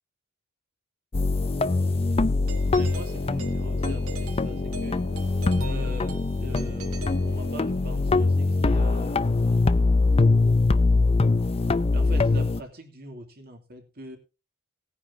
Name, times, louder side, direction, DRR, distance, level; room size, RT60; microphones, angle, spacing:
sound 1, 1.1-12.6, left 3 dB, 30° left, 0.5 m, -23 dB
Doorbell, 2.5-7.9, right 2 dB, 80° right, 2.0 m, -43 dB
voice 1, 2.7-5.0 5.6-10.0 11.9-14.2, right 1 dB, 50° right, 4 dB, 2.7 m, -42 dB
18.5 x 9.9 x 2.7 m, 0.29 s
head